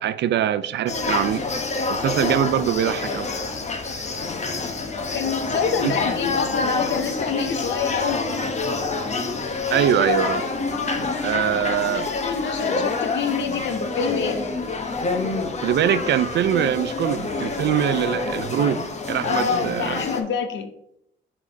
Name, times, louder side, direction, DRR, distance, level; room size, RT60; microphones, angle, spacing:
voice 1, 0.0-1.4 1.9-3.3 5.8-5.9 9.7-10.4 11.2-12.1 15.6-20.0, right 10 dB, 60° right, 0.4 m, -23 dB
sound 1, 0.9-20.2, left 3 dB, 35° left, 1.0 m, -27 dB
voice 2, 5.1-8.5 11.8-14.4 19.2-20.7, left 6 dB, 65° left, 0.8 m, -27 dB
5.1 x 4.2 x 5.1 m
cardioid pair, 90°, 20 cm